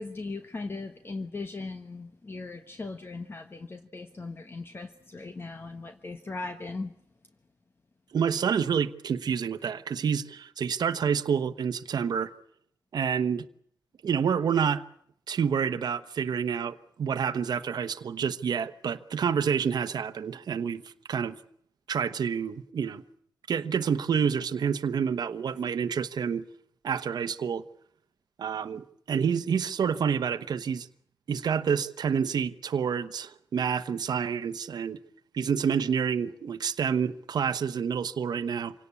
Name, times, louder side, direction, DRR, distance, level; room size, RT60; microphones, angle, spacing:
voice 1, 0.0-6.9, left 3 dB, 30° left, 1.3 m, -38 dB
voice 2, 8.1-12.3 12.9-13.5 14.0-14.8 15.3-21.4 21.9-23.0 23.5-26.4 26.8-27.6 28.4-30.9 31.3-35.0 35.3-38.7, right 7 dB, 70° right, 1.0 m, -28 dB
26.5 x 18.0 x 8.4 m
wide cardioid pair, 100°, 7 cm